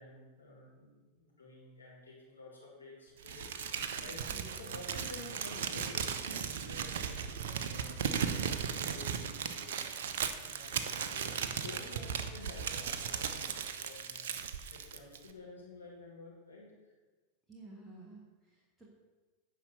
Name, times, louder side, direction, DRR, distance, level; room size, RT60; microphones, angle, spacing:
voice 1, 0.0-14.4 14.7-16.9, left 2 dB, 80° left, -5 dB, 3.6 m, -51 dB
Crumpling crinkling, 3.2-15.3, right 7 dB, 60° right, 0.7 m, -37 dB
voice 2, 4.1-4.7 17.5-18.9, right 2 dB, 10° right, -4 dB, 1.7 m, -53 dB
9.9 x 5.6 x 6.7 m, 1.3 s
figure-of-eight pair, 90°, 0 cm